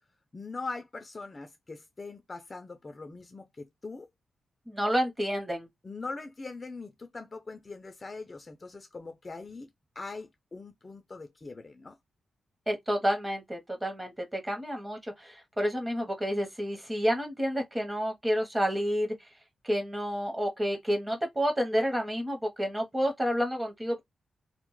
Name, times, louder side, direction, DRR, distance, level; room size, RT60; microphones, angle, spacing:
voice 1, 0.3-4.1 5.8-9.7 10.0-12.0, left 3 dB, 25° left, 0.3 m, -41 dB
voice 2, 4.7-5.7 12.7-19.1 19.6-24.0, equal, 15° right, 0.7 m, -29 dB
2.1 x 2.1 x 3.0 m
wide cardioid pair, 150°, 0 cm